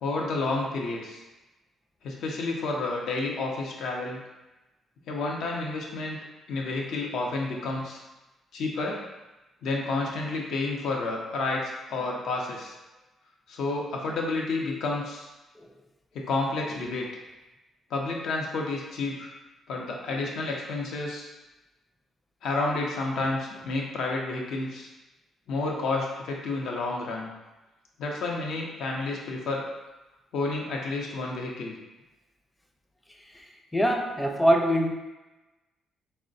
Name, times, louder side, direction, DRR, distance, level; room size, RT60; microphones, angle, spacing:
voice 1, 0.0-1.2 2.0-4.2 5.1-6.2 6.5-8.0 8.5-9.0 9.6-12.8 13.5-15.3 16.1-17.1 17.9-19.3 19.7-21.3 22.4-24.9 25.5-27.3 28.0-29.6 30.3-31.8, left 3 dB, 75° left, -1 dB, 0.6 m, -30 dB
voice 2, 33.7-34.9, equal, 10° left, 2 dB, 0.5 m, -23 dB
3.9 x 2.0 x 2.6 m, 1.1 s
supercardioid pair, 60°, 0 cm